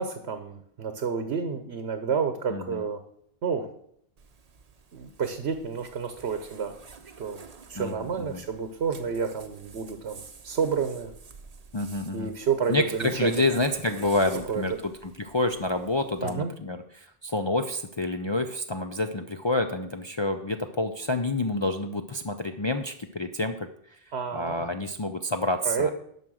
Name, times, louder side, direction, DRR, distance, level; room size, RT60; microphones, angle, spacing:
voice 1, 0.0-3.0 3.4-3.7 4.9-6.8 7.2-7.4 7.7-11.1 12.1-13.5 14.5-14.6 16.2-16.5 24.1-24.7 25.6-25.9, right 6 dB, 85° right, 8 dB, 1.2 m, -30 dB
voice 2, 2.5-2.8 7.8-8.4 11.7-12.3 12.7-23.7 24.3-25.9, left 2 dB, 35° left, 5 dB, 0.5 m, -28 dB
Zipper (clothing), 4.2-16.3, right 5 dB, 40° right, 0.8 m, -48 dB
11.0 x 6.0 x 6.3 m, 0.69 s
omnidirectional pair, 1.1 m